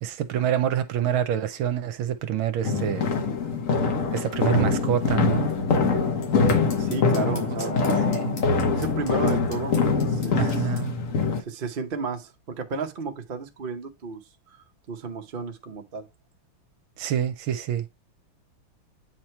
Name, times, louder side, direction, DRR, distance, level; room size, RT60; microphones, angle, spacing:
voice 1, 0.0-3.1 4.1-5.5 7.8-8.4 10.3-11.0 17.0-17.9, right 10 dB, 75° right, 1.5 m, -27 dB
sound 1, 2.6-11.4, left 4 dB, 50° left, 1.1 m, -24 dB
sound 2, 3.9-10.8, left 3 dB, 85° left, 2.9 m, -46 dB
voice 2, 6.8-7.7 8.0-8.4 8.7-10.7 11.5-14.2 14.9-16.1, right 4 dB, 55° right, 0.5 m, -33 dB
8.6 x 3.0 x 4.5 m
omnidirectional pair, 2.4 m